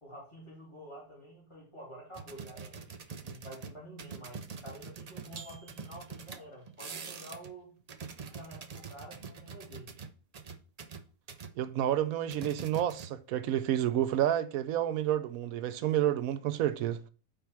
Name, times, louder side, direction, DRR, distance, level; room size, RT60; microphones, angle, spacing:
voice 1, 0.0-2.9 3.2-7.7 8.2-9.9, right 1 dB, 20° left, 2.7 m, -49 dB
sound 1, 2.1-7.5 7.8-11.5 12.3-13.4 13.7-13.9, right 5 dB, 70° right, 0.3 m, -45 dB
voice 2, 11.6-17.0, right 11 dB, 90° right, 1.0 m, -29 dB
5.2 x 4.6 x 5.8 m
omnidirectional pair, 1.5 m